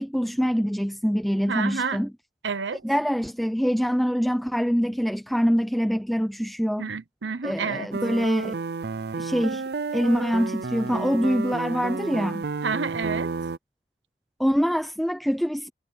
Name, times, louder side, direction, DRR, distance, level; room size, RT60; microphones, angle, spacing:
voice 1, 0.0-2.1 2.8-6.9 7.4-8.6 9.2-9.6 9.9-12.5 14.4-15.7, equal, ahead, 0.6 m, -24 dB
voice 2, 1.5-2.0 2.4-2.8 6.8-7.9 12.6-13.3, right 5 dB, 85° right, 0.9 m, -29 dB
sound 1, 7.9-13.6, right 4 dB, 65° right, 0.5 m, -31 dB
head